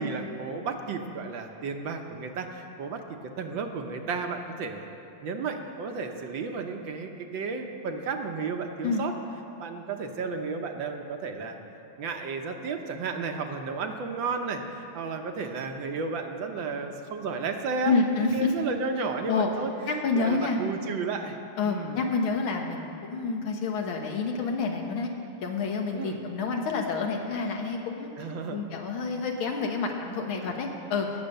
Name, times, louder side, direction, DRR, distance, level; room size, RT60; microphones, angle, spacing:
voice 1, 0.0-3.0 3.4-4.9 5.2-9.1 9.6-11.6 12.0-19.7 20.1-21.4 21.6-22.0 25.9-26.2 28.2-28.6, right 4 dB, 70° right, 4 dB, 1.6 m, -33 dB
voice 2, 17.9-18.5 19.3-19.5 19.9-20.6 21.6-25.1 25.4-28.1 28.5-31.1, left 4 dB, 80° left, 2 dB, 2.0 m, -28 dB
18.0 x 7.3 x 6.6 m, 2.6 s
omnidirectional pair, 2.2 m